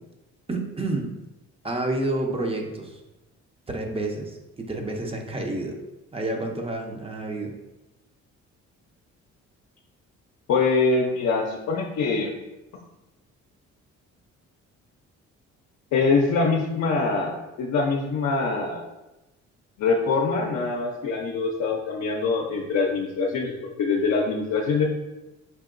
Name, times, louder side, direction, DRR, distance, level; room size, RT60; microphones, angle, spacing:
voice 1, 0.5-1.1 1.6-3.0 3.7-5.8 6.1-7.5, right 2 dB, 20° right, 3 dB, 0.6 m, -29 dB
voice 2, 10.5-12.3 15.9-18.9 19.8-24.9, left 4 dB, 65° left, -1 dB, 0.6 m, -24 dB
4.6 x 2.8 x 2.5 m, 0.98 s
cardioid pair, 90°, 30 cm